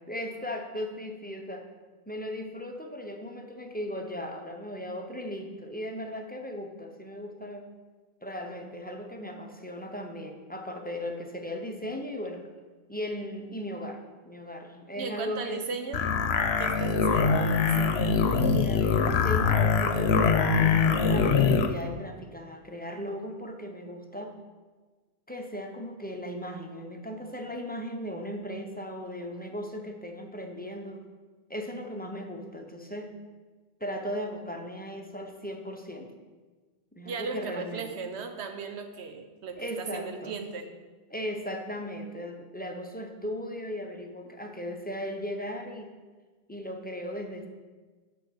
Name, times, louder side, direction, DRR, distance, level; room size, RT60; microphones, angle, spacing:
voice 1, 0.1-1.7 2.1-7.7 8.2-12.5 12.9-15.6 18.4-24.3 25.3-31.0 31.5-33.1 33.8-36.1 36.9-37.9 39.6-40.4 41.1-45.9 46.5-47.5, equal, 10° left, 3 dB, 0.6 m, -37 dB
voice 2, 15.0-16.1 16.6-18.2 37.0-40.7, right 5 dB, 80° right, 7 dB, 1.1 m, -37 dB
sound 1, 15.9-21.7, left 5 dB, 75° left, 0.9 m, -23 dB
6.4 x 5.4 x 6.3 m, 1.4 s
omnidirectional pair, 1.1 m